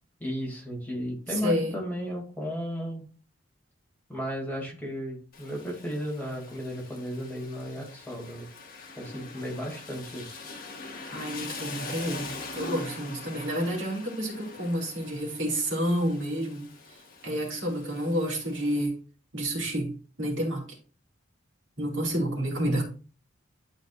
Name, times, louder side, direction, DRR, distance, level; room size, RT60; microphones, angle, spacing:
voice 1, 0.2-3.0 4.1-8.5 9.0-10.4, equal, 10° left, -3 dB, 2.6 m, -34 dB
voice 2, 1.3-1.7 11.1-16.6 17.2-19.0 19.3-20.7 21.8-22.8, equal, 70° right, -1 dB, 3.2 m, -29 dB
Rain, 5.3-18.9, left 3 dB, 45° left, 1.7 m, -43 dB
11.5 x 5.2 x 2.5 m, 0.37 s
head